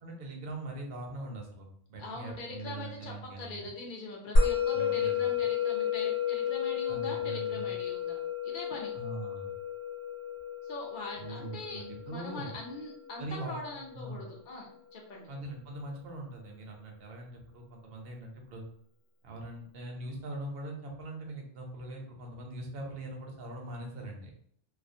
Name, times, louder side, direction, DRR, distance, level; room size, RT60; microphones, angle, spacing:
voice 1, 0.0-3.7 4.7-5.2 6.9-7.7 8.9-9.5 11.2-12.6 13.2-13.5 13.9-14.3 15.3-18.6 19.2-24.3, right 2 dB, 60° right, 0 dB, 0.8 m, -42 dB
voice 2, 2.0-8.9 10.6-15.3, left 2 dB, 55° left, 0 dB, 0.7 m, -42 dB
Musical instrument, 4.4-15.0, left 5 dB, 80° left, 0.9 m, -32 dB
2.4 x 2.0 x 2.6 m, 0.64 s
omnidirectional pair, 1.2 m